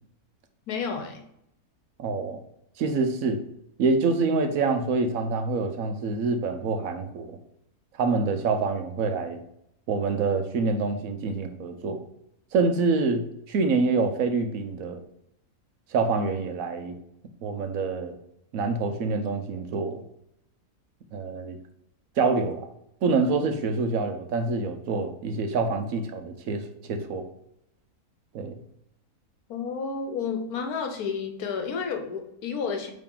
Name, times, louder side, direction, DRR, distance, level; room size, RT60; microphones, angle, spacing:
voice 1, 0.7-1.2 29.5-32.9, left 5 dB, 80° left, 5 dB, 1.4 m, -31 dB
voice 2, 2.0-2.4 2.8-3.4 3.8-7.4 8.0-9.4 9.9-12.0 12.5-15.0 15.9-17.0 17.4-18.2 18.5-20.0 21.1-21.6 22.2-22.6 23.0-26.6 26.9-27.3 28.3-28.5, right 4 dB, 70° right, 6 dB, 1.1 m, -26 dB
8.7 x 3.3 x 3.8 m, 0.77 s
omnidirectional pair, 1.6 m